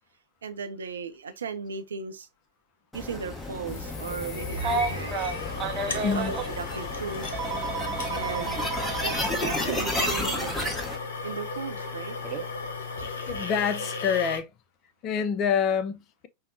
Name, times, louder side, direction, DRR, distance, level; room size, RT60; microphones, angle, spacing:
voice 1, 0.4-2.3 2.9-5.3 5.9-7.4 8.1-8.7 9.0-10.5 11.2-12.1, right 5 dB, 70° right, 0.5 m, -36 dB
sound 1, 2.9-11.0, left 1 dB, 5° left, 1.0 m, -33 dB
sound 2, 3.7-14.4, left 3 dB, 65° left, 0.8 m, -35 dB
Telephone, 4.6-6.5 7.3-9.2 10.6-10.7 12.2-12.4, right 4 dB, 25° right, 0.6 m, -31 dB
voice 2, 13.3-14.5 15.0-16.3, left 7 dB, 35° left, 0.5 m, -26 dB
5.4 x 2.1 x 2.6 m
figure-of-eight pair, 90°, 0 cm